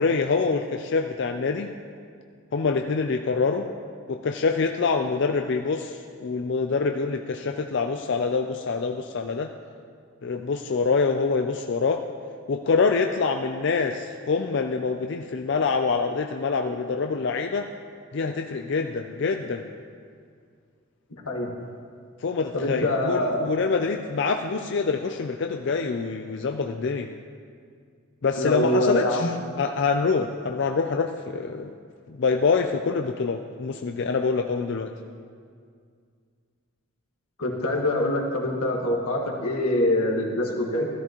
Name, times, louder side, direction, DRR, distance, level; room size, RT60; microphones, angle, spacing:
voice 1, 0.0-1.7 2.5-3.7 4.1-9.5 10.2-12.0 12.5-17.7 18.1-19.6 22.2-27.1 28.2-29.3 29.6-31.8 32.1-34.9, left 4 dB, 55° left, 4 dB, 0.4 m, -25 dB
voice 2, 22.5-23.5 28.4-29.3 37.4-40.9, left 1 dB, 90° left, 0 dB, 1.7 m, -24 dB
14.5 x 13.0 x 3.0 m, 2.2 s
head